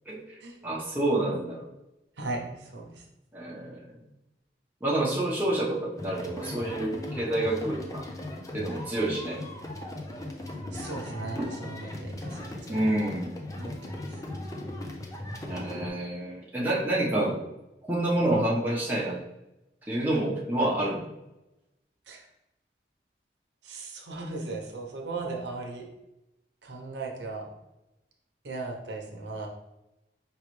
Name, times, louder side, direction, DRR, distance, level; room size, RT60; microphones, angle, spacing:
voice 1, 0.6-1.6 3.3-3.8 4.8-8.0 8.5-9.4 11.4-11.5 12.7-13.3 15.5-17.3 17.9-19.2 19.9-21.0, right 1 dB, 10° right, -6 dB, 1.0 m, -28 dB
voice 2, 2.2-3.0 10.7-12.8 13.6-14.2 22.1-22.3 23.6-25.9 26.6-27.5 28.4-29.5, right 3 dB, 90° right, 1 dB, 0.8 m, -37 dB
sound 1, 6.0-15.9, left 1 dB, 20° left, 0.5 m, -38 dB
4.7 x 3.2 x 3.1 m, 0.94 s
head